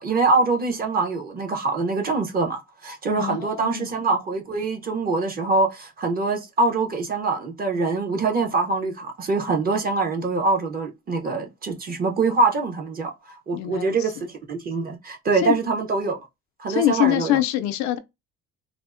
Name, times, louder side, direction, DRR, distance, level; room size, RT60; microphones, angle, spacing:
voice 1, 0.0-13.1 13.5-16.2 16.6-17.4, right 3 dB, 30° right, 0.7 m, -24 dB
voice 2, 3.2-3.9 13.5-14.2 15.4-15.6 16.7-18.0, left 13 dB, 70° left, 0.4 m, -24 dB
3.4 x 2.0 x 2.4 m
cardioid pair, 125°, 30 cm